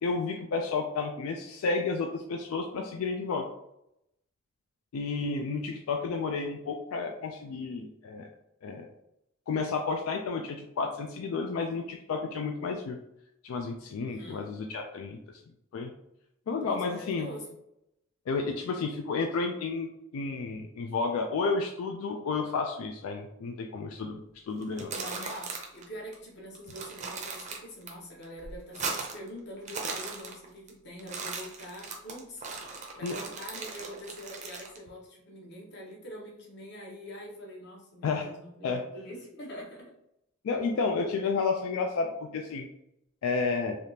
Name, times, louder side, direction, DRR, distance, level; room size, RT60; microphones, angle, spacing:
voice 1, 0.0-3.5 4.9-8.3 8.6-8.9 9.5-13.0 13.4-15.2 15.7-15.9 16.5-17.3 18.3-19.9 20.1-24.2 24.5-24.9 33.0-33.2 38.0-38.3 38.6-38.8 40.4-42.7 43.2-43.8, left 4 dB, 90° left, 3 dB, 0.3 m, -31 dB
voice 2, 13.9-14.5 16.6-17.5 24.9-39.8, equal, 55° left, -2 dB, 0.9 m, -44 dB
sound 1, 24.6-25.8 26.1-26.2 26.6-27.9 28.2-29.3 29.6-30.7 31.0-34.8, right 4 dB, 35° right, 0.5 m, -38 dB
3.4 x 2.4 x 2.7 m, 0.80 s
head